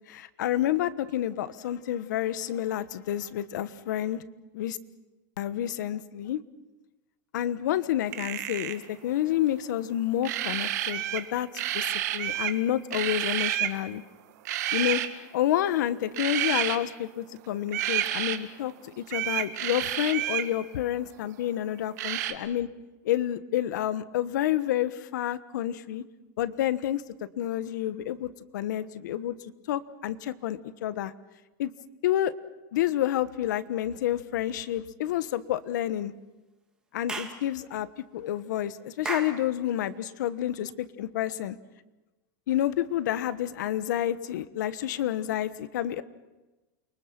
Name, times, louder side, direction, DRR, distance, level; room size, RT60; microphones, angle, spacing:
voice 1, 0.1-4.2 4.5-4.8 5.4-6.4 7.3-11.5 11.7-14.0 14.7-15.0 15.3-22.7 23.0-26.0 26.4-27.0 27.4-29.3 29.7-31.1 31.6-31.7 32.0-32.3 32.7-36.1 36.9-37.9 38.1-41.6 42.5-46.0, left 12 dB, 70° left, 14 dB, 1.3 m, -29 dB
sound 1, 8.1-8.8 10.2-11.3 11.5-12.6 12.9-13.8 14.4-15.1 16.1-16.8 17.7-18.4 19.1-20.5 22.0-22.3, right 13 dB, 60° right, 2.0 m, -29 dB
Clapping / Chirp tweet, 37.1-37.4 39.0-39.4, right 3 dB, 10° right, 2.1 m, -33 dB
29.0 x 24.0 x 6.0 m, 1.1 s
supercardioid pair, 170°, 10 cm